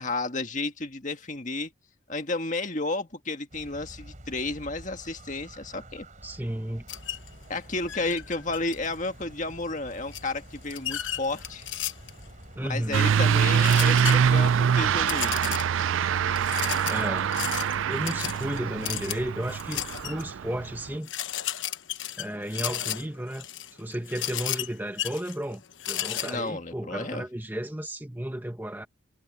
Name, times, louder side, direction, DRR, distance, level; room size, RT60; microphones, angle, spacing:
voice 1, 0.0-1.7 2.1-6.1 7.5-11.7 12.7-15.3 26.1-27.2, left 2 dB, 40° left, 1.8 m, -32 dB
sound 1, 3.5-15.3, right 1 dB, 40° right, 3.9 m, -48 dB
voice 2, 6.2-6.9 12.6-13.0 16.9-17.3 17.9-21.1 22.2-23.5 23.7-25.6 25.9-28.9, right 1 dB, 10° right, 1.2 m, -33 dB
sound 2, 6.9-7.3 7.9-9.1 10.1-12.3 13.5-14.5 15.0-15.8 16.4-20.2 20.6-20.7 21.0-26.4, left 11 dB, 70° left, 1.1 m, -34 dB
Truck / Accelerating revving vroom, 12.9-20.9, right 7 dB, 75° right, 0.4 m, -24 dB
head